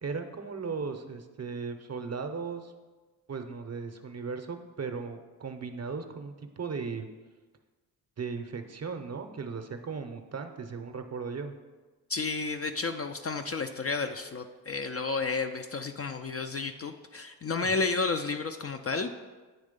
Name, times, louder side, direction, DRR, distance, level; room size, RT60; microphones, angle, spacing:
voice 1, 0.0-2.7 3.3-7.1 8.2-11.5 17.6-17.8, right 5 dB, 35° right, 7 dB, 0.7 m, -37 dB
voice 2, 12.1-19.1, left 4 dB, 35° left, 6 dB, 0.5 m, -31 dB
8.9 x 3.2 x 5.2 m, 1.3 s
cardioid pair, 50°, 43 cm